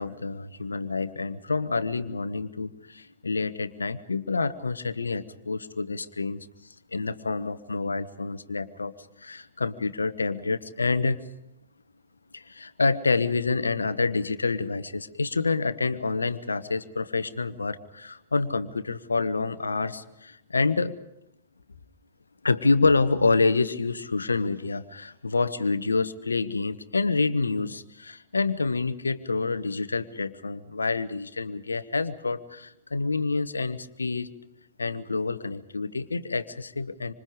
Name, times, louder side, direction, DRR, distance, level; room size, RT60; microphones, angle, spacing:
voice 1, 0.0-6.5 6.9-8.9 9.2-11.2 12.3-20.9 22.4-34.3 34.8-37.1, left 3 dB, 85° left, 13 dB, 1.2 m, -27 dB
26.5 x 26.0 x 5.1 m, 0.86 s
figure-of-eight pair, 105°, 0 cm